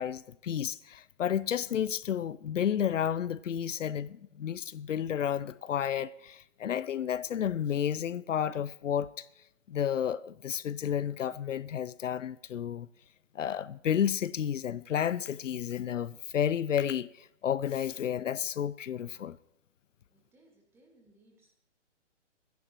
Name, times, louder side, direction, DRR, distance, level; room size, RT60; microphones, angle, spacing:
voice 1, 0.0-9.3 9.7-12.9 13.3-19.4, left 9 dB, 80° left, 0.6 m, -31 dB
voice 2, 20.1-21.5, right 1 dB, 5° right, 1.9 m, -64 dB
24.5 x 10.5 x 3.0 m
hypercardioid pair, 150°, 37 cm